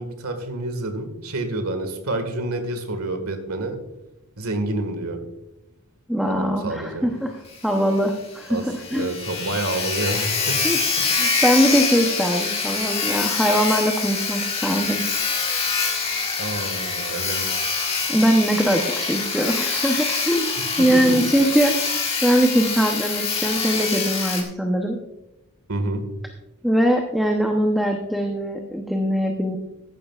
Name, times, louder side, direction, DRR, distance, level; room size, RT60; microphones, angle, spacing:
voice 1, 0.0-3.8 4.4-5.2 6.3-7.1 8.5-8.7 8.9-10.6 11.0-11.2 16.4-17.8 20.8-21.2 25.7-26.0, right 2 dB, 80° right, 7 dB, 1.8 m, -28 dB
voice 2, 6.1-9.1 10.6-10.8 11.2-15.1 18.1-21.8 22.2-25.0 26.6-29.6, equal, ahead, 2 dB, 0.8 m, -21 dB
Sawing, 7.5-7.6 7.9-8.0 8.4-8.5 8.7-24.4, left 5 dB, 25° left, 1.8 m, -25 dB
15.5 x 11.5 x 2.4 m, 0.93 s
head